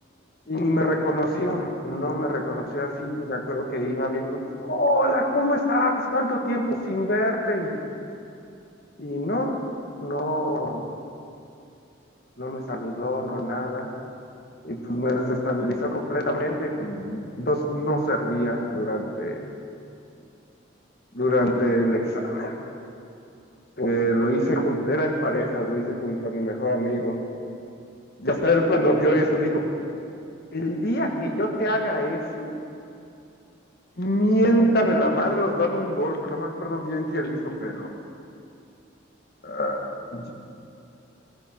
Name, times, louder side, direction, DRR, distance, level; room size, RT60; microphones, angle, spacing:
voice 1, 0.5-7.7 9.0-9.5 10.0-10.8 12.4-13.9 14.6-19.5 21.1-22.6 23.8-27.2 28.2-29.6 30.5-32.5 34.0-37.9 39.4-40.3, equal, 50° left, 2 dB, 1.6 m, -25 dB
16.5 x 14.5 x 4.5 m, 2.6 s
head